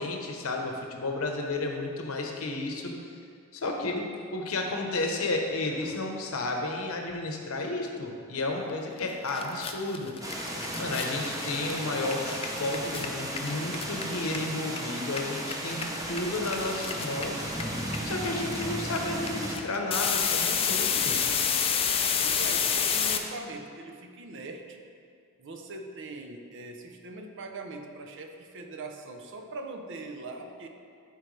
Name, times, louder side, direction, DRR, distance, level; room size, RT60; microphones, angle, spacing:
voice 1, 0.0-3.0 3.5-10.4 10.8-17.4 18.0-21.2, left 2 dB, 75° left, 2 dB, 0.9 m, -32 dB
sound 1, 9.0-9.1 9.3-14.8 15.1-23.2, left 7 dB, 25° left, 0.4 m, -29 dB
sound 2, 10.2-19.6, right 1 dB, 15° right, 0.7 m, -35 dB
voice 2, 22.2-24.8 25.4-30.7, right 2 dB, 60° right, 4 dB, 0.7 m, -41 dB
12.0 x 4.5 x 3.3 m, 2.3 s
head